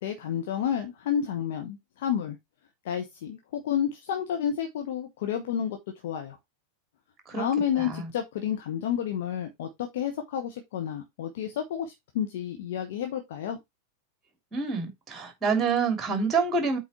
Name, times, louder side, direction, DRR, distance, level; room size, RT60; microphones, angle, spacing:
voice 1, 0.0-2.4 2.8-5.8 6.0-6.4 7.3-13.6, left 9 dB, 55° left, 1.3 m, -30 dB
voice 2, 7.8-8.1 14.5-16.8, right 5 dB, 15° right, 3.2 m, -27 dB
8.3 x 4.1 x 4.4 m
figure-of-eight pair, 90°, 0 cm